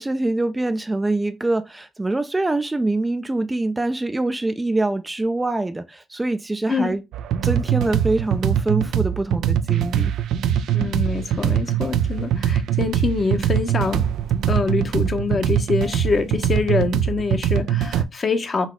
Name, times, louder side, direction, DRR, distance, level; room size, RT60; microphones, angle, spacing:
voice 1, 0.0-7.0 7.4-10.1, right 2 dB, 15° right, 0.4 m, -24 dB
sound 1, 7.1-18.0, right 10 dB, 80° right, 0.4 m, -22 dB
voice 2, 10.7-14.0 14.5-18.7, left 4 dB, 40° left, 0.8 m, -24 dB
4.0 x 2.7 x 4.6 m
cardioid pair, 90°, 0 cm